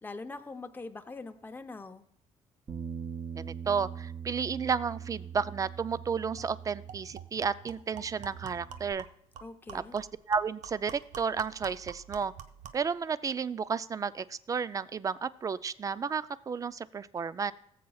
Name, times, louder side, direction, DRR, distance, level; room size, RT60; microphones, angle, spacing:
voice 1, 0.0-2.0 9.4-10.0, left 3 dB, 15° left, 7 dB, 0.7 m, -43 dB
Bass guitar, 2.7-7.4 7.7-8.9, right 7 dB, 45° right, 2.3 m, -42 dB
voice 2, 3.4-9.0 9.7-12.3 12.7-17.5, right 6 dB, 25° right, 16 dB, 0.4 m, -32 dB
sound 1, 6.0-6.1 6.4-6.5 6.9-12.9, right 8 dB, 75° right, 0.7 m, -48 dB
18.0 x 7.5 x 2.3 m, 0.71 s
cardioid pair, 110°, 13 cm